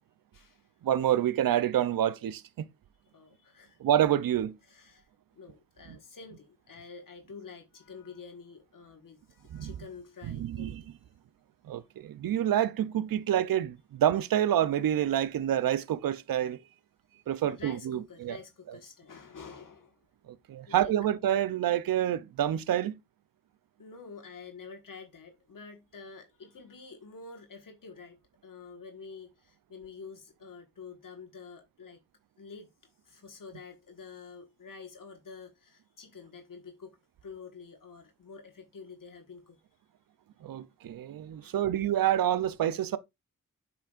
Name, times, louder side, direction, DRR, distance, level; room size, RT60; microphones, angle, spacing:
voice 1, 0.8-2.7 3.8-4.6 9.5-9.7 10.3-10.8 11.6-16.6 17.3-18.4 20.3-23.0 40.4-43.0, right 11 dB, 80° right, 0.5 m, -28 dB
voice 2, 3.1-3.8 4.6-5.1 5.3-10.9 17.5-20.0 20.7-20.9 23.8-32.0 32.4-32.7 33.0-37.0 37.2-39.6 41.4-41.6, left 5 dB, 70° left, 1.4 m, -48 dB
8.6 x 5.9 x 2.4 m
wide cardioid pair, 75°, 34 cm